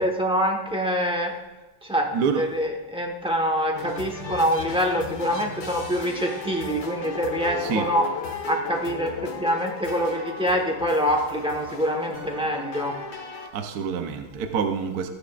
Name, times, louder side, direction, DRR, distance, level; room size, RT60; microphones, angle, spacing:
voice 1, 0.0-1.3 1.8-8.1 8.5-12.9, equal, 5° right, 1 dB, 0.7 m, -25 dB
voice 2, 2.1-2.4 7.6-7.9 13.5-15.1, right 6 dB, 65° right, 6 dB, 1.0 m, -26 dB
sound 1, 3.7-13.5, left 3 dB, 50° left, 1.6 m, -38 dB
Guitar, 6.6-13.7 14.0-14.1, left 4 dB, 85° left, 0.9 m, -39 dB
15.0 x 9.8 x 2.5 m, 1.2 s
omnidirectional pair, 2.4 m